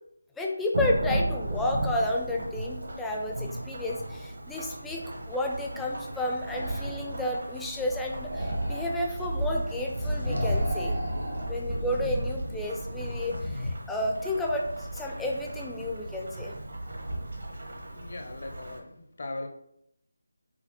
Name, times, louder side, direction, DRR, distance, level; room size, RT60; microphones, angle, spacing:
voice 1, 0.4-11.0 11.5-16.5, left 1 dB, 5° left, -1 dB, 0.4 m, -31 dB
Thunderstorm / Rain, 0.7-18.8, right 1 dB, 65° right, 0.9 m, -35 dB
sound 1, 6.5-7.1 8.2-9.0 10.2-11.5, right 1 dB, 80° right, 1.3 m, -34 dB
sound 2, 9.6-10.8 11.1-11.5 12.7-13.7, left 1 dB, 75° left, 0.9 m, -33 dB
voice 2, 17.9-19.5, left 2 dB, 55° left, 4 dB, 0.6 m, -39 dB
5.7 x 2.0 x 2.7 m, 0.74 s
figure-of-eight pair, 160°, 0 cm